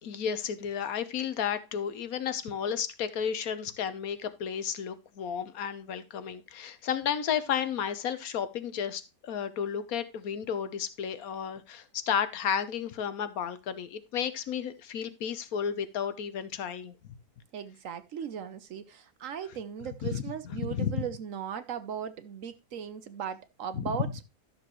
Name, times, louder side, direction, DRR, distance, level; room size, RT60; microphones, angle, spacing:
voice 1, 0.0-16.9 20.1-20.2 20.6-21.1 23.7-23.8, left 8 dB, 65° left, 1.3 m, -32 dB
voice 2, 17.5-24.2, right 8 dB, 60° right, 1.0 m, -38 dB
12.5 x 6.8 x 3.0 m
omnidirectional pair, 1.7 m